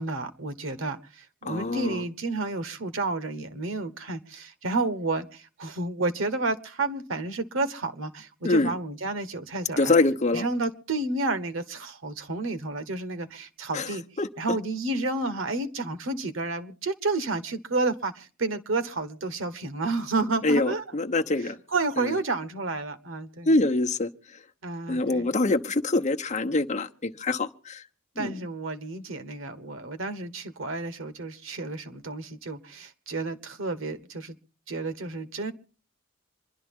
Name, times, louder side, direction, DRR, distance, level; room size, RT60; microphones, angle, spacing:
voice 1, 0.0-9.9 10.3-14.0 14.4-20.8 21.7-23.5 24.6-25.3 28.2-34.3 34.7-35.5, right 3 dB, 90° right, 1.3 m, -31 dB
voice 2, 1.4-2.0 8.4-8.7 9.8-10.4 13.7-13.9 14.2-14.3 20.4-21.6 22.0-22.1 23.4-24.1 24.9-27.8 28.2-28.3, left 2 dB, 40° left, 0.8 m, -25 dB
26.5 x 11.5 x 3.7 m
head